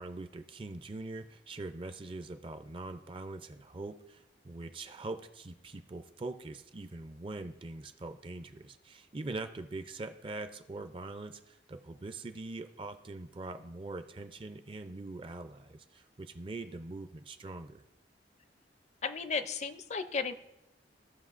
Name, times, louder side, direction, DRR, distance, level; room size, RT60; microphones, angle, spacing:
voice 1, 0.0-17.8, right 2 dB, 30° right, 9 dB, 0.4 m, -43 dB
voice 2, 19.0-20.3, left 5 dB, 40° left, 10 dB, 0.4 m, -34 dB
16.0 x 5.6 x 2.5 m, 0.91 s
head